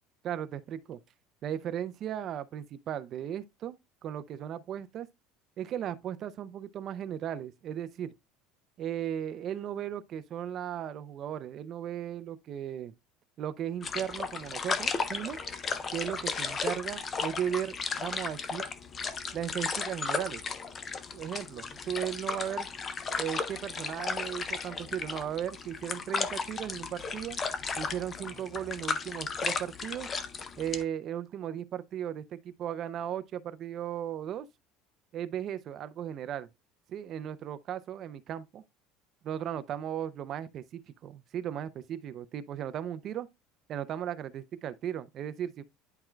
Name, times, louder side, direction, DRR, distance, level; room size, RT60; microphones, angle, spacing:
voice 1, 0.2-1.0 1.4-3.8 4.0-5.1 5.6-8.1 8.8-12.9 13.4-15.4 15.9-18.7 19.3-20.4 21.1-22.7 23.2-27.4 27.8-30.1 30.6-34.5 35.1-36.5 36.9-38.6 39.2-43.3 43.7-45.6, right 10 dB, 35° right, 0.4 m, -36 dB
Water sounds, 13.8-30.8, left 5 dB, 20° left, 0.5 m, -35 dB
11.0 x 4.4 x 2.2 m
cardioid pair, 170°, 0 cm